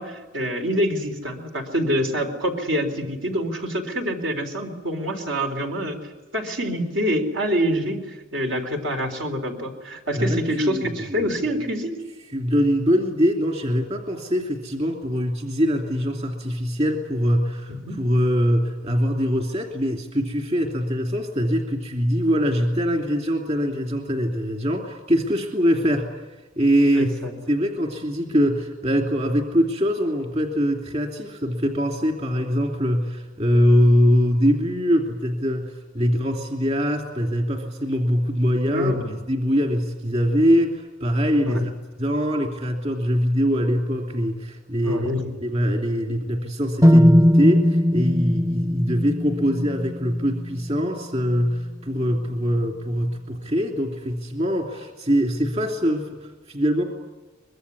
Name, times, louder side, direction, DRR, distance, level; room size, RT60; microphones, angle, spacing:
voice 1, 0.0-6.0 6.3-12.0 17.7-18.0 26.9-27.3 38.7-39.2 41.4-41.6 44.8-45.3, equal, 75° right, 4 dB, 4.0 m, -26 dB
voice 2, 10.1-11.3 12.3-26.1 26.6-27.1 27.5-39.0 39.3-41.7 42.0-45.1 45.4-56.8, equal, 35° right, 2 dB, 2.8 m, -23 dB
sound 1, 46.8-50.8, equal, 15° right, 0.8 m, -19 dB
24.0 x 22.0 x 9.7 m, 1.2 s
head